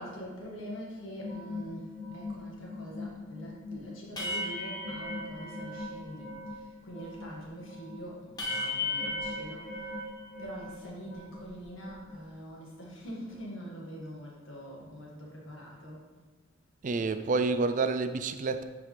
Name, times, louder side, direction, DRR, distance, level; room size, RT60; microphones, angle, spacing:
voice 1, 0.0-10.0 10.4-16.1, equal, 80° left, -3 dB, 1.9 m, -44 dB
sound 1, 1.2-6.6 6.9-10.8 11.0-12.2, left 2 dB, 20° left, 1.0 m, -38 dB
voice 2, 16.8-18.6, right 3 dB, 40° right, 10 dB, 0.4 m, -28 dB
9.4 x 4.8 x 3.4 m, 1.4 s
head